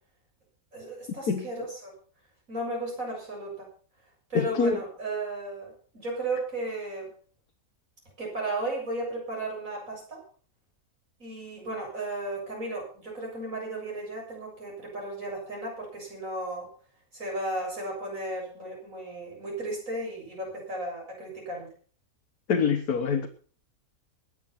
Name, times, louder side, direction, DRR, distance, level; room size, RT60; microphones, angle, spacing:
voice 1, 0.7-1.9 2.5-3.7 4.3-7.1 8.2-10.2 11.2-16.7 17.1-21.7, right 2 dB, 60° right, 7.9 m, -34 dB
voice 2, 4.4-4.8 22.5-23.3, left 5 dB, 80° left, 1.7 m, -25 dB
20.5 x 8.0 x 5.8 m
omnidirectional pair, 1.6 m